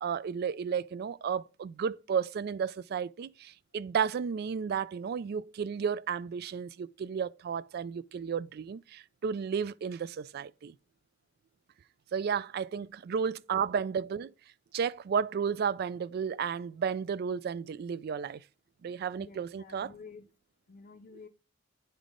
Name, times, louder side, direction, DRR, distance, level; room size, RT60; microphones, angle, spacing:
voice 1, 0.0-10.7 12.1-14.3 14.7-18.4 18.8-19.9, right 6 dB, 55° right, 0.3 m, -33 dB
voice 2, 19.2-20.3 20.7-21.3, left 4 dB, 45° left, 0.5 m, -50 dB
9.4 x 3.6 x 3.7 m
head